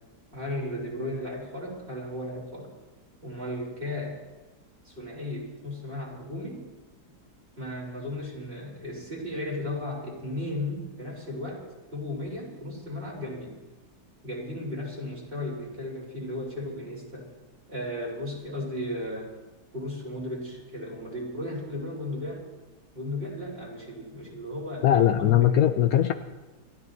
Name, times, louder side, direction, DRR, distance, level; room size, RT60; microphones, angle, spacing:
voice 1, 0.3-2.7 3.2-4.2 4.8-6.6 7.6-11.6 11.9-13.6 14.2-17.3 17.7-19.3 19.7-22.5 22.9-25.7, left 1 dB, 30° right, -3 dB, 4.3 m, -35 dB
voice 2, 24.8-26.1, left 11 dB, 70° left, 8 dB, 1.0 m, -20 dB
28.5 x 13.5 x 2.8 m, 1.2 s
omnidirectional pair, 1.8 m